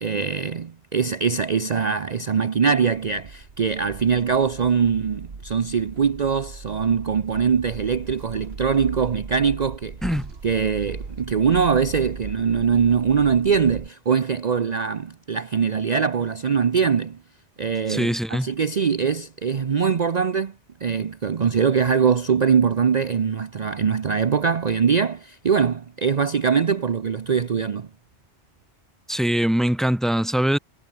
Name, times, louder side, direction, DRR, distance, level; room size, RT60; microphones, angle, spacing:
voice 1, 0.0-10.0 10.4-17.2 17.6-20.5 20.8-27.9, right 6 dB, 40° right, 0.8 m, -22 dB
sound 1, 2.7-13.9, right 4 dB, 60° right, 2.2 m, -38 dB
voice 2, 10.0-10.3 17.9-18.5 29.1-30.6, equal, ahead, 1.4 m, -22 dB
omnidirectional pair, 1.2 m